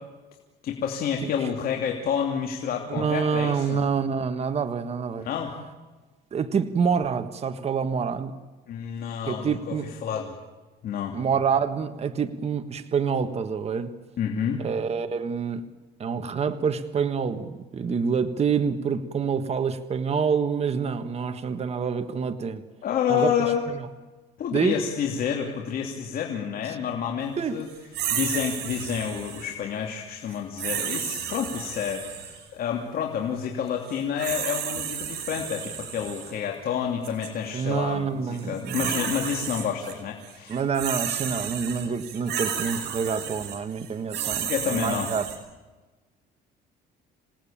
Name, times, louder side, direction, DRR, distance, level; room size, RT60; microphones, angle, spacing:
voice 1, 0.6-3.8 5.2-5.5 8.7-9.8 10.0-10.3 10.8-11.2 14.2-14.6 22.8-23.6 24.4-27.7 28.1-40.6 44.5-45.1, left 8 dB, 60° left, 1 dB, 2.9 m, -29 dB
voice 2, 2.9-5.3 6.3-8.3 9.2-9.9 11.1-13.9 14.6-15.6 16.0-22.6 23.1-23.3 24.5-24.8 27.4-27.6 37.5-38.9 40.5-45.3, right 6 dB, 40° right, 8 dB, 1.5 m, -27 dB
sound 1, 27.9-29.5 30.6-32.4 33.9-36.3 37.0-37.3 38.3-39.9 40.2-45.4, right 9 dB, 75° right, 5.3 m, -32 dB
27.5 x 18.0 x 8.8 m, 1.2 s
cardioid pair, 110°, 17 cm